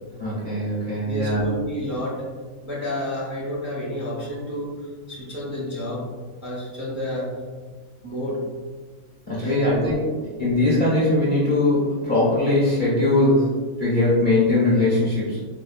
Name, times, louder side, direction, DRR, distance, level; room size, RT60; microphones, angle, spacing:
voice 1, 0.2-1.5 9.3-10.0 10.4-13.5 13.8-15.4, left 2 dB, 45° left, -8 dB, 0.7 m, -20 dB
voice 2, 1.0-2.2 2.6-4.7 5.1-6.1 6.4-7.3 8.0-8.4 9.4-9.9, left 1 dB, 15° right, -8 dB, 0.7 m, -30 dB
4.4 x 2.1 x 2.4 m, 1.5 s
omnidirectional pair, 1.6 m